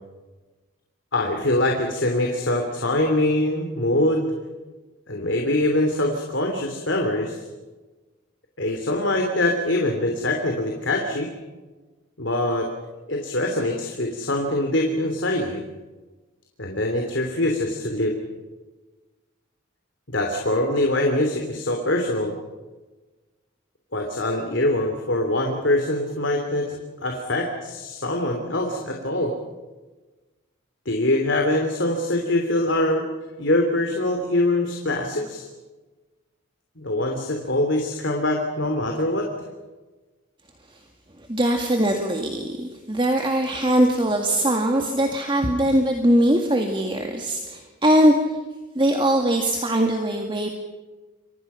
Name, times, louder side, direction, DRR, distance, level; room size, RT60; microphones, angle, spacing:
voice 1, 1.1-4.3 5.1-7.4 8.6-11.3 12.2-12.7 13.1-15.6 16.6-18.2 20.1-22.3 23.9-29.3 30.8-33.1 33.4-35.5 36.8-39.3, left 1 dB, 65° left, 2 dB, 3.2 m, -23 dB
voice 2, 41.3-48.1 48.8-50.5, right 1 dB, 25° right, 3 dB, 2.0 m, -21 dB
29.0 x 24.5 x 5.8 m, 1.2 s
head